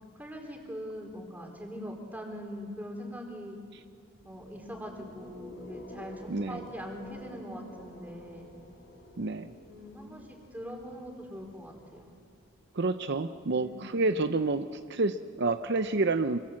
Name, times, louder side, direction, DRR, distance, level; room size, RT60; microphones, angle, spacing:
voice 1, 0.1-3.6 4.2-8.6 9.7-12.2 13.5-14.0, equal, 10° right, 1 dB, 4.1 m, -42 dB
sound 1, 4.2-12.3, equal, 55° left, 4.1 m, -50 dB
voice 2, 6.3-6.6 9.2-9.5 12.7-16.4, right 3 dB, 55° right, 9 dB, 0.7 m, -29 dB
27.5 x 25.0 x 7.6 m, 2.2 s
head